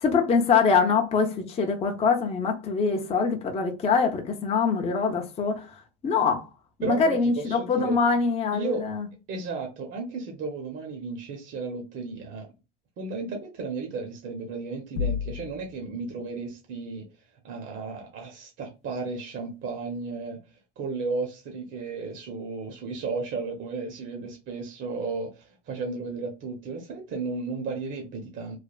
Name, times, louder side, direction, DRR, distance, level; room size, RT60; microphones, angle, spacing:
voice 1, 0.0-6.5 6.8-9.1, left 5 dB, 20° left, 0.5 m, -24 dB
voice 2, 6.8-8.0 8.5-8.9 9.3-12.5 13.0-17.1 17.4-28.6, right 4 dB, 35° right, 0.7 m, -34 dB
sound 1, 15.0-15.9, left 7 dB, 85° left, 0.7 m, -30 dB
3.2 x 2.2 x 2.3 m
supercardioid pair, 125°, 34 cm